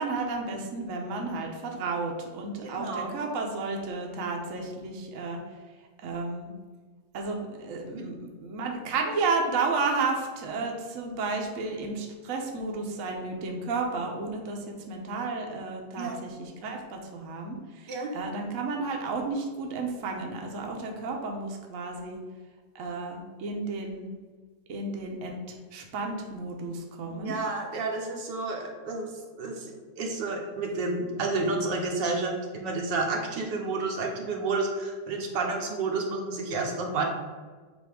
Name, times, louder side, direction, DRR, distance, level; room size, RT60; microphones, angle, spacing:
voice 1, 0.0-5.4 6.0-6.5 7.1-22.2 22.7-24.1 24.7-27.4, right 3 dB, 55° right, 1 dB, 1.1 m, -32 dB
voice 2, 2.6-3.2 7.9-8.0 16.0-16.2 17.9-18.1 27.1-29.1 29.4-37.0, right 3 dB, 75° right, 1 dB, 1.6 m, -30 dB
7.5 x 2.7 x 5.0 m, 1.4 s
omnidirectional pair, 2.0 m